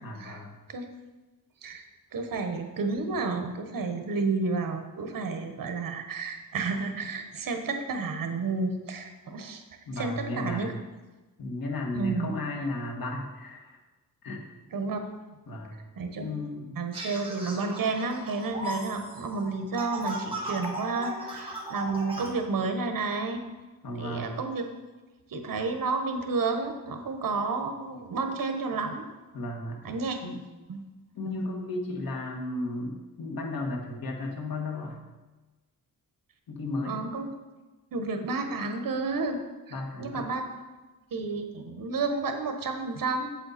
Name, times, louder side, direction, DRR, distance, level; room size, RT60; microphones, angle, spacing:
voice 1, 0.0-0.5 9.9-10.8 11.4-13.8 14.2-14.5 15.5-15.8 16.2-16.8 23.8-24.3 29.3-29.8 30.2-30.4 31.1-35.0 36.5-37.0 39.7-40.3, left 2 dB, 90° left, 1 dB, 1.6 m, -34 dB
voice 2, 2.1-9.6 10.0-10.7 11.9-12.3 14.7-15.0 15.9-16.3 16.8-23.4 24.0-24.6 25.3-29.0 29.8-30.2 30.7-30.8 31.3-31.4 36.9-37.3 37.9-39.4 40.0-40.5 41.1-43.3, right 3 dB, 70° right, 6 dB, 1.2 m, -31 dB
sound 1, 16.9-22.3, right 1 dB, 15° right, 1.5 m, -37 dB
7.8 x 7.8 x 4.2 m, 1.2 s
wide cardioid pair, 150°, 34 cm